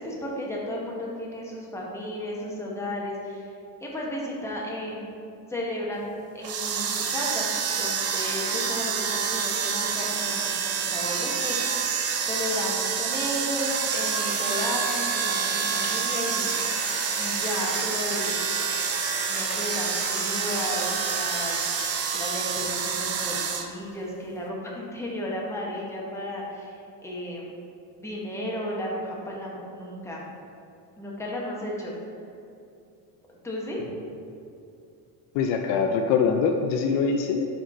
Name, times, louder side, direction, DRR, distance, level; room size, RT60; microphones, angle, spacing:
voice 1, 0.0-3.5 3.8-5.1 5.5-16.5 17.2-18.3 19.3-27.5 28.0-30.3 31.0-31.9 33.3-33.8, left 1 dB, 5° left, -4 dB, 1.0 m, -34 dB
sound 1, 6.4-23.6, right 6 dB, 30° right, 0.5 m, -28 dB
sound 2, 13.8-22.8, left 4 dB, 90° left, 1.3 m, -38 dB
voice 2, 35.3-37.5, left 5 dB, 60° left, 4 dB, 0.5 m, -23 dB
5.0 x 4.5 x 4.3 m, 2.6 s
supercardioid pair, 120°, 50 cm